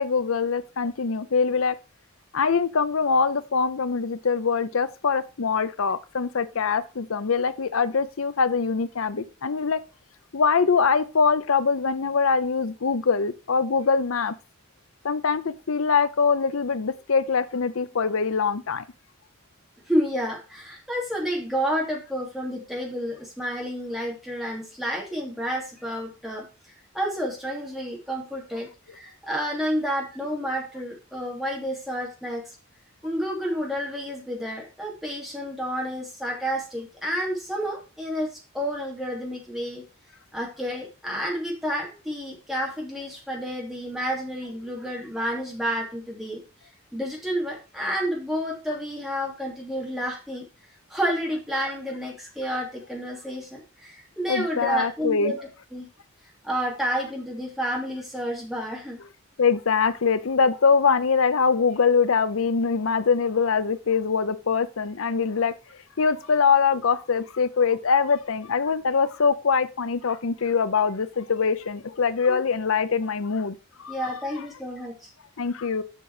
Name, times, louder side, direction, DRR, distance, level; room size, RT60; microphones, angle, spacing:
voice 1, 0.0-1.8 2.3-9.8 10.3-14.3 15.0-18.8 54.3-55.3 59.0-59.1 59.4-65.5 66.0-74.5 75.4-75.8, left 5 dB, 75° left, 0.7 m, -23 dB
voice 2, 19.9-26.5 26.9-32.5 33.0-39.8 40.3-46.4 46.9-50.4 50.9-55.9 56.4-59.0 72.3-72.4 73.9-75.1, equal, ahead, 2.8 m, -30 dB
7.6 x 6.1 x 4.9 m
head